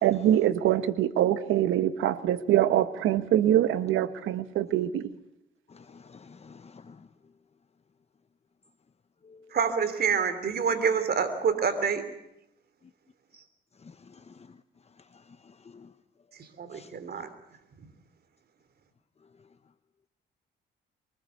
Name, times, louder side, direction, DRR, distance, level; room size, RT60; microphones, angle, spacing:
voice 1, 0.0-5.1, right 12 dB, 85° right, 1.4 m, -24 dB
voice 2, 5.7-7.0 15.7-15.9 16.7-16.9, left 5 dB, 30° left, 1.0 m, -50 dB
voice 3, 9.5-12.0 16.4-17.3, right 6 dB, 50° right, 3.2 m, -27 dB
24.0 x 19.5 x 8.3 m
cardioid pair, 90°, 20 cm